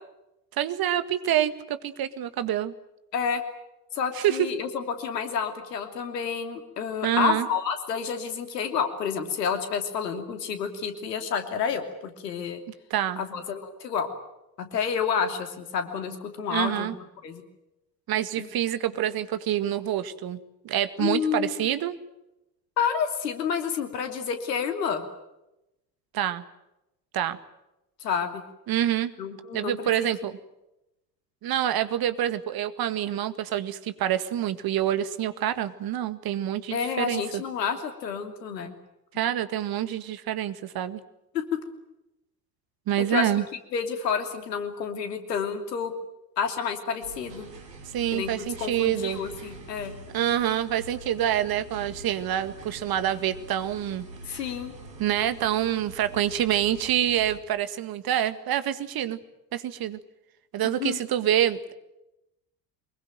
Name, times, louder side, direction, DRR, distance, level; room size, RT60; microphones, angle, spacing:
voice 1, 0.6-2.7 4.2-4.5 7.0-7.5 12.9-13.2 16.5-17.0 18.1-20.4 20.6-22.0 26.1-26.4 27.1-27.4 28.7-29.1 29.5-30.4 31.4-37.2 39.2-41.0 42.9-43.4 47.9-49.2 50.1-54.4 55.0-59.2 59.5-60.0 60.5-61.7, right 11 dB, 45° right, 12 dB, 1.9 m, -26 dB
voice 2, 3.9-12.6 13.2-14.1 14.6-16.9 17.2-17.4 18.4-18.5 21.0-21.7 22.8-25.0 28.0-28.4 29.2-30.1 36.7-38.7 41.3-41.4 43.0-43.3 43.7-45.9 46.4-47.5 48.1-49.9 54.3-54.7 60.6-61.0, left 7 dB, 75° left, 7 dB, 3.0 m, -29 dB
sound 1, 47.0-57.4, right 2 dB, 80° right, 3.0 m, -45 dB
24.5 x 22.0 x 9.3 m, 0.93 s
figure-of-eight pair, 60°, 49 cm